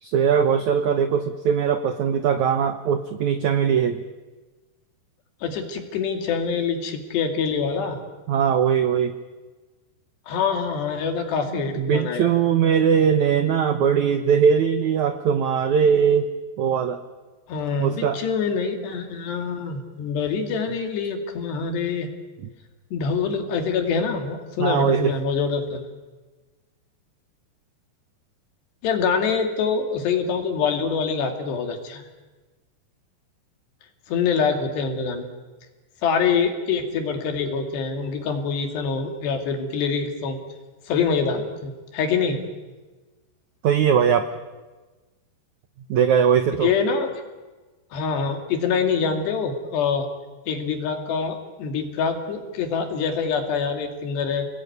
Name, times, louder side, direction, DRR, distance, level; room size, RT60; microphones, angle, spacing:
voice 1, 0.0-4.0 8.3-9.1 11.5-16.3 16.6-17.0 17.8-18.2 24.6-25.1 43.6-44.3 45.9-46.7, right 7 dB, 80° right, 8 dB, 1.7 m, -20 dB
voice 2, 5.4-8.0 10.3-12.3 17.5-22.1 22.9-25.9 28.8-32.0 34.1-35.3 36.0-40.4 40.9-42.4 46.6-47.1 47.9-50.1 50.5-54.4, left 5 dB, 75° left, 4 dB, 4.6 m, -25 dB
30.0 x 20.0 x 9.4 m, 1.3 s
omnidirectional pair, 4.9 m